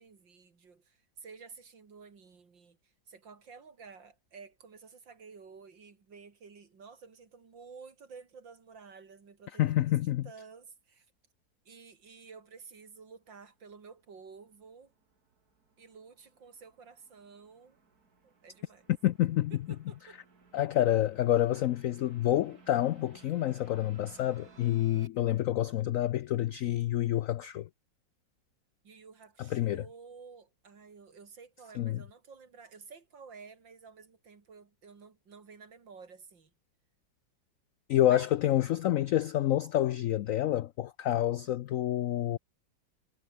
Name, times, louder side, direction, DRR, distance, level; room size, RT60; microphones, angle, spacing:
voice 1, 0.0-11.1 11.7-14.9 15.8-17.8 18.2-18.9 19.5-20.2 28.8-36.5 38.0-38.3, right 5 dB, 80° right, 3.5 m, -52 dB
voice 2, 9.6-10.3 19.0-19.5 20.5-27.7 29.4-29.8 31.8-32.0 37.9-42.4, left 13 dB, 85° left, 0.7 m, -28 dB
sound 1, 13.6-25.1, right 4 dB, 55° right, 3.2 m, -60 dB
omnidirectional pair, 2.0 m